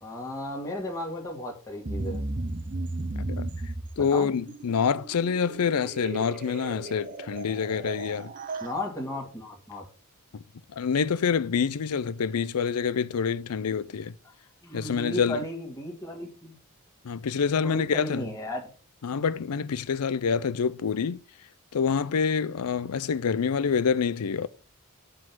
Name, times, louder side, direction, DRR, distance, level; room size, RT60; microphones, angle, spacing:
voice 1, 0.0-2.2 4.0-4.3 8.6-9.9 14.6-16.6 17.6-18.7, left 1 dB, 15° left, 2.0 m, -35 dB
sound 1, 1.8-8.7, right 2 dB, 35° right, 0.6 m, -35 dB
voice 2, 3.2-3.5 4.0-8.3 10.3-10.4 10.7-14.1 14.7-15.4 17.0-18.3 19.0-21.2 21.7-24.5, left 6 dB, 90° left, 0.5 m, -27 dB
7.5 x 3.8 x 6.0 m
head